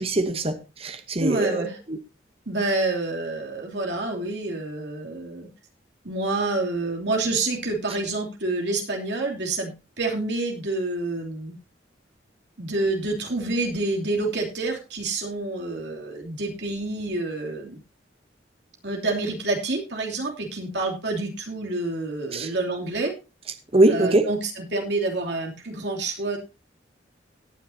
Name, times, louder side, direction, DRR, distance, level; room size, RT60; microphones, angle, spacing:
voice 1, 0.0-2.0 22.3-22.5 23.7-24.3, right 2 dB, 30° right, 1.0 m, -22 dB
voice 2, 1.2-1.8 2.5-5.5 6.0-11.6 12.6-17.8 18.8-23.1 23.9-26.4, right 2 dB, 70° right, 3.0 m, -28 dB
17.5 x 9.5 x 2.8 m
head